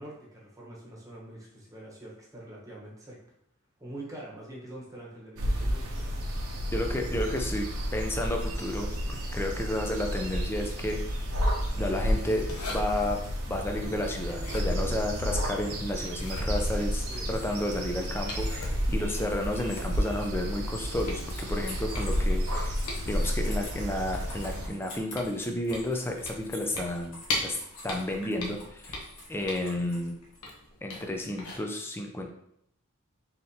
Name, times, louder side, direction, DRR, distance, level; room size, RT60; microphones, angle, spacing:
voice 1, 0.0-3.2 3.8-6.3 17.1-17.3, right 1 dB, 15° right, -4 dB, 1.1 m, -45 dB
sound 1, 5.4-24.7, equal, 80° right, 0.9 m, -32 dB
voice 2, 6.7-11.2 11.8-13.2 13.5-22.7 23.1-27.6 27.8-29.0 29.3-30.2 30.8-32.3, left 1 dB, 10° left, 2 dB, 0.5 m, -32 dB
sound 2, 11.7-30.4, left 2 dB, 70° left, 1.4 m, -49 dB
sound 3, 12.5-13.2 14.3-15.5 16.0-17.4 18.3-20.2 20.7-20.8 21.1-24.0 24.4-27.6 27.9-29.9 30.4-31.1 31.4-31.6, left 1 dB, 90° left, 0.9 m, -34 dB
4.1 x 3.9 x 2.8 m, 0.74 s
head